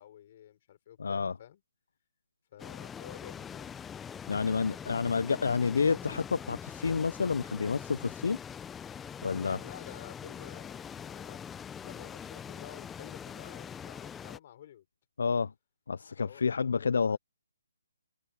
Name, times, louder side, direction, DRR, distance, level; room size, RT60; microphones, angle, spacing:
voice 1, 0.0-1.6 2.5-3.7 9.4-11.5 11.8-14.9 16.2-17.2, left 11 dB, 35° left, 4.7 m, -51 dB
voice 2, 1.0-1.3 4.3-8.4 9.2-9.6 15.2-15.5 15.9-17.2, left 5 dB, 70° left, 0.5 m, -29 dB
sound 1, 2.6-14.4, left 8 dB, 10° left, 0.5 m, -43 dB
hypercardioid pair, 160°, 0 cm